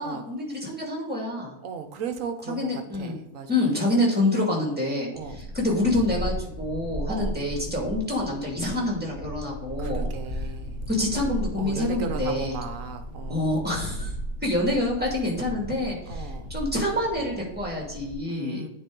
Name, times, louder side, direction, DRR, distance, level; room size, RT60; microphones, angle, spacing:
voice 1, 0.0-1.5 2.5-3.1 3.5-5.1 5.5-10.1 10.9-12.5 13.3-14.1 14.4-18.6, left 1 dB, 5° right, -2 dB, 2.1 m, -27 dB
voice 2, 1.6-3.6 5.1-5.4 7.1-7.3 9.8-10.8 11.6-13.5 16.0-16.5 18.2-18.7, right 7 dB, 60° right, 7 dB, 1.1 m, -36 dB
sound 1, 5.1-18.2, equal, 80° left, 1.5 m, -35 dB
9.3 x 4.4 x 3.7 m, 0.87 s
omnidirectional pair, 1.7 m